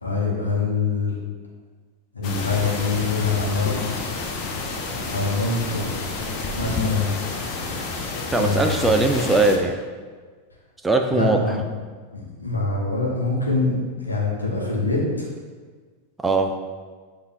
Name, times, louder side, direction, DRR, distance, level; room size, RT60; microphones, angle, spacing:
voice 1, 0.0-1.1 2.1-3.7 5.1-5.9 6.6-7.1 8.3-8.9 11.1-11.6 12.1-15.2, left 3 dB, 80° left, -4 dB, 1.0 m, -24 dB
sound 1, 2.2-9.6, left 3 dB, 40° left, 0.6 m, -29 dB
voice 2, 8.3-9.8 10.8-11.4 16.2-16.6, right 2 dB, 10° right, 4 dB, 0.3 m, -20 dB
6.6 x 2.6 x 2.6 m, 1.5 s
figure-of-eight pair, 90°, 0 cm